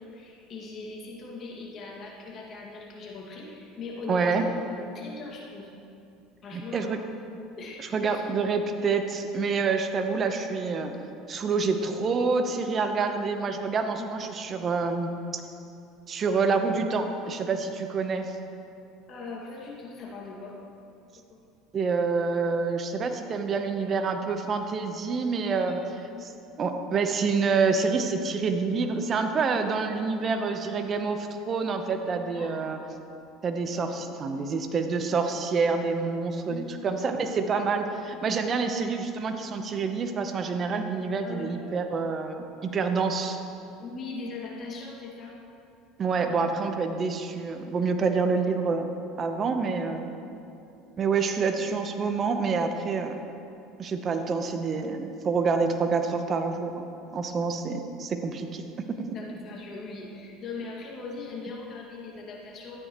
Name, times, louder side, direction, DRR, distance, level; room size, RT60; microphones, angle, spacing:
voice 1, 0.0-5.7 6.4-7.0 7.6-8.2 14.0-14.2 19.1-20.6 21.3-21.4 25.6-25.8 26.0-26.3 32.3-32.7 36.5-36.8 41.2-41.6 43.8-45.4 59.1-62.8, left 3 dB, 45° left, -2 dB, 2.1 m, -40 dB
voice 2, 4.1-4.5 6.5-7.0 7.8-10.9 11.3-15.4 16.1-18.4 21.7-25.8 26.2-26.3 26.6-32.8 33.4-43.4 46.0-48.9 49.2-50.1 51.0-53.2 53.8-56.8 57.1-59.2, right 4 dB, 35° right, 6 dB, 0.9 m, -27 dB
13.5 x 9.2 x 3.1 m, 2.7 s
supercardioid pair, 100°, 0 cm